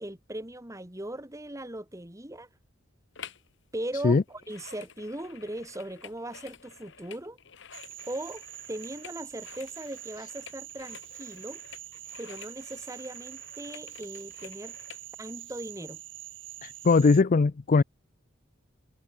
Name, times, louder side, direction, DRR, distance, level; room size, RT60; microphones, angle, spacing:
voice 1, 0.0-2.5 3.7-7.4 8.1-8.4 8.7-11.6 12.2-14.8 15.2-16.0, right 1 dB, 15° right, 3.2 m, -39 dB
sound 1, 3.2-3.5 3.8-15.1 15.6-15.7, left 7 dB, 65° left, 3.5 m, -50 dB
Cricket / Frog, 7.7-17.2, right 15 dB, 65° right, 3.0 m, -45 dB
voice 2, 16.6-17.8, left 4 dB, 40° left, 0.4 m, -20 dB
head